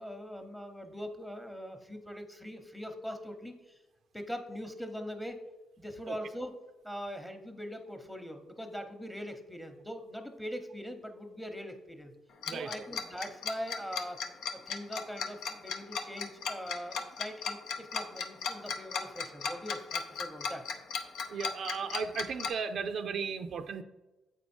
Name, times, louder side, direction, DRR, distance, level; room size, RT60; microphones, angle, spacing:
voice 1, 0.0-3.8 4.1-5.4 5.8-6.6 6.8-12.1 12.5-14.2 14.5-20.7, equal, 5° left, 6 dB, 0.9 m, -42 dB
Tick-tock, 12.4-22.5, left 6 dB, 80° left, 0.7 m, -35 dB
voice 2, 21.3-23.8, right 6 dB, 65° right, 8 dB, 0.4 m, -35 dB
7.9 x 4.4 x 4.4 m, 1.1 s
cardioid pair, 90°, 0 cm